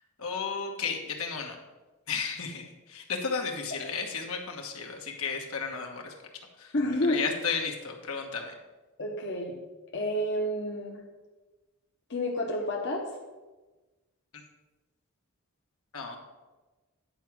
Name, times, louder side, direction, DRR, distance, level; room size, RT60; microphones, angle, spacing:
voice 1, 0.2-1.5 2.1-6.1 6.6-6.7 7.1-8.5 15.9-16.2, left 5 dB, 75° left, 2 dB, 1.3 m, -33 dB
voice 2, 6.7-7.2 9.0-9.6 9.9-11.0 12.1-13.1, left 1 dB, 50° left, -1 dB, 1.0 m, -29 dB
9.9 x 4.7 x 6.0 m, 1.2 s
head